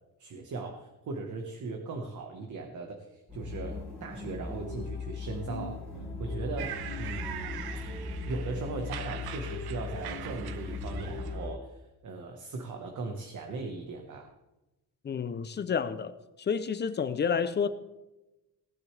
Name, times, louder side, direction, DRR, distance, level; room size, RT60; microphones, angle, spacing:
voice 1, 0.2-7.6 8.2-14.3, right 3 dB, 45° right, 1.3 m, -39 dB
sound 1, 3.3-11.4, left 4 dB, 5° left, 3.1 m, -38 dB
sound 2, 4.3-11.6, left 3 dB, 80° left, 2.3 m, -47 dB
sound 3, 6.6-11.5, right 10 dB, 60° right, 0.8 m, -42 dB
voice 2, 15.0-16.1 16.4-17.7, left 6 dB, 25° left, 0.5 m, -29 dB
18.5 x 10.5 x 3.3 m
cardioid pair, 175°, 42 cm